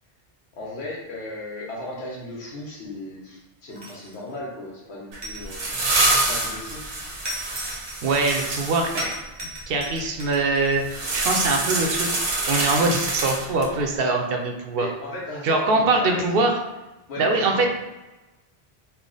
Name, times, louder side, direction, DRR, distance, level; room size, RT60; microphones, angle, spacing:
voice 1, 0.6-5.7 6.3-6.8 14.8-16.5 17.1-17.7, left 1 dB, 85° left, -4 dB, 1.2 m, -36 dB
sound 1, 3.7-4.3 5.2-6.5 7.2-8.6 9.0-11.1, equal, 30° right, 0.6 m, -37 dB
sound 2, 5.1-9.1 10.8-13.8, right 2 dB, 85° right, 1.1 m, -26 dB
voice 2, 7.7-9.1 9.7-12.1 12.5-14.9 15.4-16.5 17.2-17.7, right 3 dB, 70° right, 3 dB, 0.7 m, -23 dB
3.4 x 2.1 x 3.8 m, 1.1 s
omnidirectional pair, 1.1 m